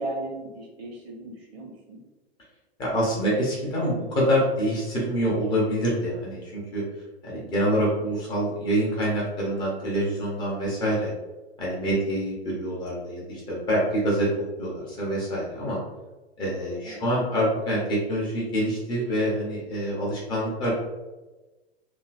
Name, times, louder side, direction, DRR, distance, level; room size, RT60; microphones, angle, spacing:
voice 1, 0.0-2.0 16.8-17.0, right 2 dB, 65° right, 0 dB, 0.9 m, -36 dB
voice 2, 2.8-6.8 7.2-11.1 11.6-14.3 14.6-15.8 16.4-20.7, equal, 15° left, -5 dB, 0.4 m, -26 dB
2.6 x 2.4 x 2.4 m, 1.1 s
figure-of-eight pair, 105°, 33 cm